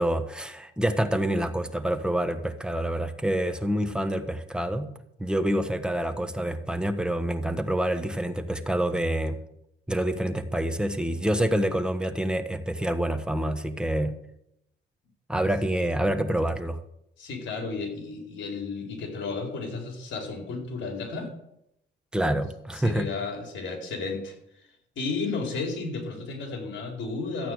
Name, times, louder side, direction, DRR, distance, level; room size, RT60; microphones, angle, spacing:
voice 1, 0.0-4.9 5.2-9.4 9.9-14.2 15.3-16.8 22.1-23.1, right 1 dB, 5° right, 8 dB, 1.4 m, -27 dB
voice 2, 17.2-21.3 22.7-24.3 25.0-27.5, left 4 dB, 70° left, 2 dB, 4.3 m, -33 dB
13.5 x 8.9 x 6.5 m, 0.79 s
cardioid pair, 90°, 20 cm